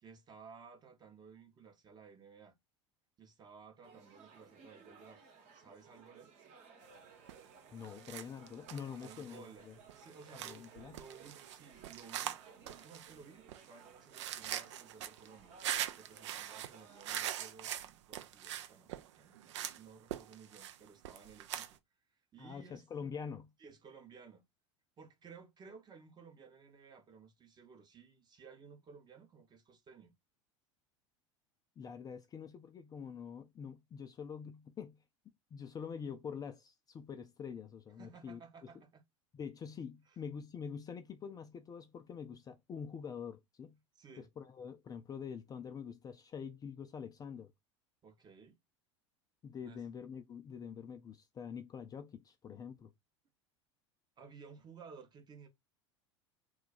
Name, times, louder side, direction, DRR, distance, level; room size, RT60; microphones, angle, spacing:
voice 1, 0.0-2.6 3.2-5.2 5.5-6.3 9.0-15.6 16.0-21.8 22.3-22.9 23.6-24.4 25.0-30.1 38.0-39.0 40.1-40.2 44.0-44.3 48.0-48.6 49.6-49.9 54.2-55.5, right 5 dB, 25° right, 0.7 m, -56 dB
sound 1, 3.8-17.3, right 5 dB, 50° right, 1.0 m, -59 dB
sound 2, 7.3-7.5 7.8-21.8, right 11 dB, 70° right, 0.4 m, -43 dB
voice 2, 7.7-9.7 10.4-11.0 22.4-23.5 31.8-35.0 35.5-38.4 39.3-43.8 44.2-47.5 49.4-52.9, left 6 dB, 25° left, 0.4 m, -45 dB
2.3 x 2.2 x 3.9 m
figure-of-eight pair, 80°, 16 cm